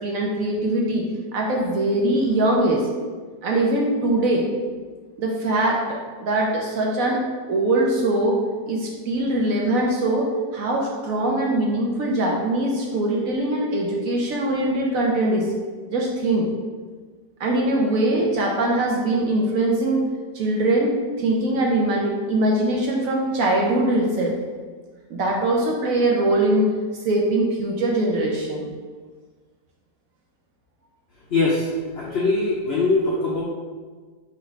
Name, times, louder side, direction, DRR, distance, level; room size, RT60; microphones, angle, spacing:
voice 1, 0.0-2.9 3.4-4.5 5.2-7.2 7.5-8.4 8.7-15.5 15.9-16.5 17.4-24.3 25.1-26.7 27.0-28.7, right 1 dB, 65° right, -1 dB, 0.9 m, -22 dB
voice 2, 31.3-31.7 32.0-33.4, left 3 dB, 70° left, -4 dB, 0.5 m, -21 dB
3.7 x 3.1 x 4.6 m, 1.4 s
omnidirectional pair, 1.8 m